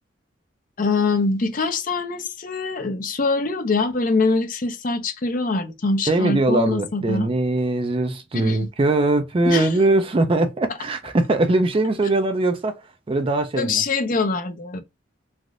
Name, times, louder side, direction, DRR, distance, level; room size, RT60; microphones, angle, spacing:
voice 1, 0.8-7.3 8.3-8.7 9.4-9.7 13.6-14.8, left 3 dB, 40° left, 0.5 m, -23 dB
voice 2, 6.1-12.8 13.1-13.8, right 2 dB, 25° right, 0.3 m, -21 dB
3.3 x 2.5 x 2.4 m
head